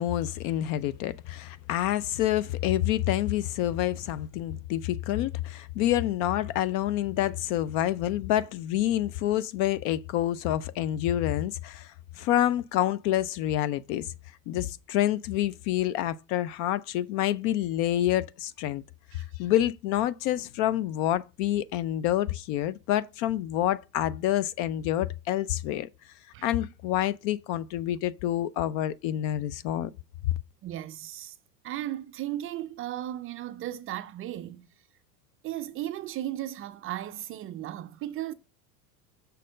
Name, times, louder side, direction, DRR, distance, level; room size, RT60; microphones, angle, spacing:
voice 1, 0.0-14.1 14.5-18.8 19.1-26.1 26.4-29.9, left 13 dB, 40° left, 0.4 m, -28 dB
voice 2, 30.6-31.4 31.6-34.7 35.4-38.3, right 13 dB, 25° right, 0.5 m, -36 dB
6.6 x 4.1 x 6.4 m
hypercardioid pair, 85°, 50 cm